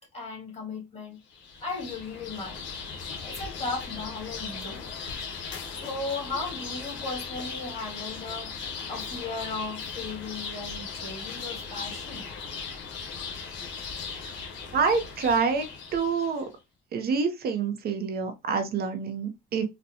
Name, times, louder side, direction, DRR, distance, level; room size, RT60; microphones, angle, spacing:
voice 1, 0.1-1.2 1.6-2.7 3.2-4.9 5.8-12.2, left 3 dB, 35° left, 1.8 m, -36 dB
sound 1, 1.3-16.5, left 5 dB, 85° left, 1.0 m, -38 dB
voice 2, 14.7-15.7 15.9-16.4 16.9-19.6, right 5 dB, 55° right, 0.7 m, -27 dB
4.0 x 2.2 x 2.7 m
cardioid pair, 135°, 19 cm